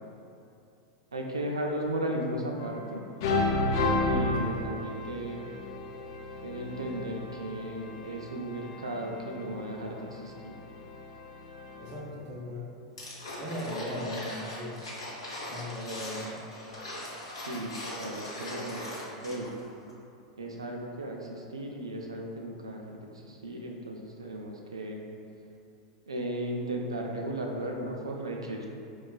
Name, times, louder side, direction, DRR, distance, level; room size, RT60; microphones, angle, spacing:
voice 1, 1.1-3.0 4.0-5.5 6.4-10.6 17.3-18.9 19.2-19.5 20.4-25.1 26.1-28.7, right 1 dB, 85° right, 1 dB, 0.4 m, -35 dB
sound 1, 2.6-3.0 3.2-12.0, left 2 dB, 60° left, 0.4 m, -33 dB
voice 2, 11.8-12.7 13.4-14.8 15.5-16.4, left 1 dB, 45° right, -3 dB, 0.7 m, -38 dB
sound 2, 13.0-19.6 19.9-20.0, left 1 dB, 85° left, 0.9 m, -40 dB
5.1 x 2.3 x 2.2 m, 2.6 s
hypercardioid pair, 90°, 3 cm